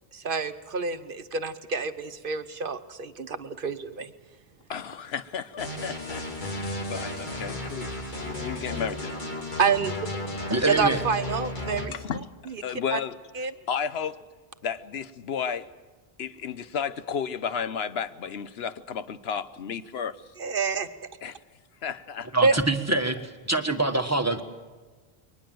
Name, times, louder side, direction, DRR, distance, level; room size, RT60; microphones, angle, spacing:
voice 1, 0.1-4.1 9.6-10.0 10.7-11.9 12.5-12.6 12.9-13.0 13.3-13.5 20.4-20.9 22.4-22.5, right 5 dB, 60° right, 10 dB, 1.1 m, -27 dB
voice 2, 4.7-7.9 8.2-9.1 11.9-13.2 13.7-14.2 14.6-15.7 16.2-20.1 21.2-21.3 21.8-22.3, left 7 dB, 80° left, 13 dB, 1.1 m, -33 dB
sound 1, 5.6-11.9, left 1 dB, 50° left, 2.9 m, -34 dB
voice 3, 10.5-11.0 22.3-24.4, right 2 dB, 15° right, 6 dB, 1.4 m, -25 dB
22.5 x 19.5 x 7.7 m, 1.4 s
omnidirectional pair, 1.0 m